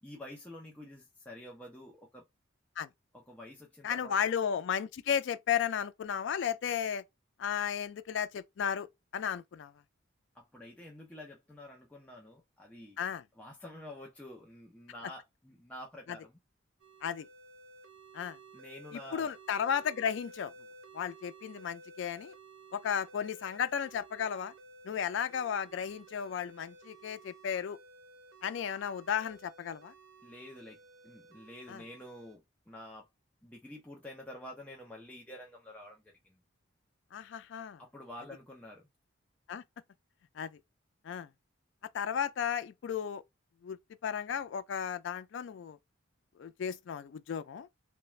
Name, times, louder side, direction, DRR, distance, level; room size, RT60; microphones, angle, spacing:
voice 1, 0.0-2.2 3.1-4.3 10.3-13.0 13.4-16.4 18.5-19.3 30.2-33.1 33.4-36.4 37.8-38.9, left 1 dB, 5° left, 0.5 m, -49 dB
voice 2, 3.8-7.0 7.4-8.9 9.1-9.7 13.0-13.2 17.0-17.3 18.1-18.4 18.9-20.5 20.9-22.3 22.7-24.5 24.8-27.8 28.4-29.9 31.7-31.8 37.1-37.8 39.5-39.6 40.4-40.6 41.0-41.3 41.9-43.2 43.6-45.8 46.4-47.7, left 8 dB, 65° left, 0.3 m, -34 dB
sound 1, 16.8-32.4, right 2 dB, 75° right, 0.6 m, -55 dB
2.3 x 2.1 x 3.1 m
head